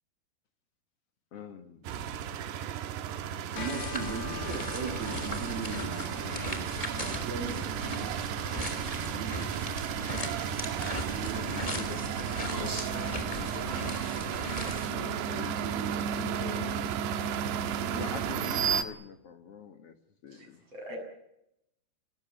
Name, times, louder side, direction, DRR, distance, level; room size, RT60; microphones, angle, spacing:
voice 1, 1.3-2.0 11.2-12.3 12.9-14.5 14.9-17.0 17.9-20.0 20.2-20.6, left 7 dB, 55° left, 8 dB, 1.7 m, -44 dB
sound 1, 1.9-18.8, right 8 dB, 85° right, 3.4 m, -33 dB
sound 2, 3.5-14.9, left 1 dB, 10° left, 2.9 m, -38 dB
voice 2, 3.5-9.9 10.6-11.5, right 5 dB, 65° right, 2 dB, 4.8 m, -40 dB
Bell, 3.6-13.2, left 8 dB, 75° left, 3.4 m, -49 dB
voice 3, 12.5-13.0 20.3-21.0, right 1 dB, 35° right, 2 dB, 8.4 m, -39 dB
30.0 x 15.5 x 9.1 m, 0.83 s
omnidirectional pair, 4.7 m